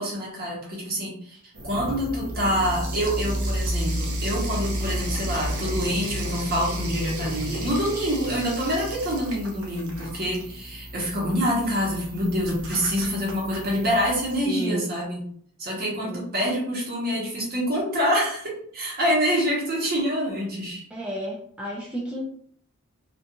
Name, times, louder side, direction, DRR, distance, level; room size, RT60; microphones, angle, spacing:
voice 1, 0.0-1.4 1.6-15.2 15.6-20.8, equal, 45° right, -3 dB, 0.9 m, -26 dB
sound 1, 1.5-14.4, equal, 70° right, 0.6 m, -32 dB
voice 2, 14.4-14.9 16.0-16.3 20.9-22.2, right 1 dB, 5° right, -5 dB, 0.4 m, -32 dB
2.4 x 2.3 x 2.8 m, 0.63 s
head